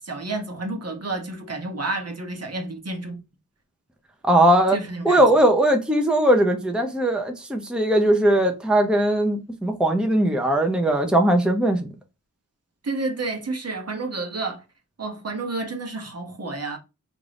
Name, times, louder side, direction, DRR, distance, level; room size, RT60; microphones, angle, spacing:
voice 1, 0.0-3.2 4.7-5.3 12.8-14.6 15.0-16.8, right 3 dB, 50° right, 0.9 m, -30 dB
voice 2, 4.2-4.8 5.0-11.9, right 1 dB, 5° right, 0.7 m, -19 dB
3.6 x 2.6 x 3.3 m
wide cardioid pair, 60°, 33 cm